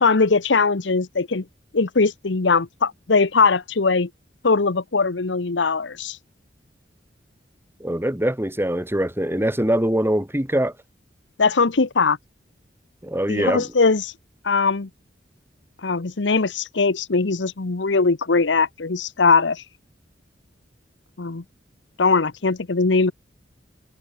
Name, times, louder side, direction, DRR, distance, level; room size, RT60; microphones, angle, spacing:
voice 1, 0.0-1.4 1.7-4.1 4.4-6.2 11.4-12.2 13.3-14.1 14.4-14.9 15.8-19.6 21.2-21.4 22.0-23.1, left 4 dB, 80° left, 0.9 m, -20 dB
voice 2, 7.8-10.7 13.0-13.6, right 1 dB, 15° right, 3.3 m, -23 dB
head